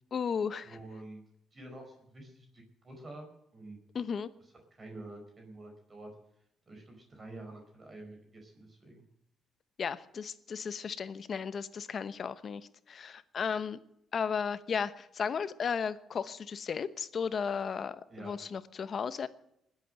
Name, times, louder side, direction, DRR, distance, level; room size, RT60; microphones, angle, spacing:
voice 1, 0.1-0.8 3.9-4.3 9.8-13.8 14.1-19.3, left 6 dB, 50° left, 14 dB, 1.0 m, -35 dB
voice 2, 0.6-1.2 1.5-3.8 4.8-6.1 6.7-9.0 18.1-18.4, right 2 dB, 30° right, 3 dB, 4.8 m, -48 dB
20.0 x 8.5 x 7.6 m, 0.79 s
cardioid pair, 90°, 0 cm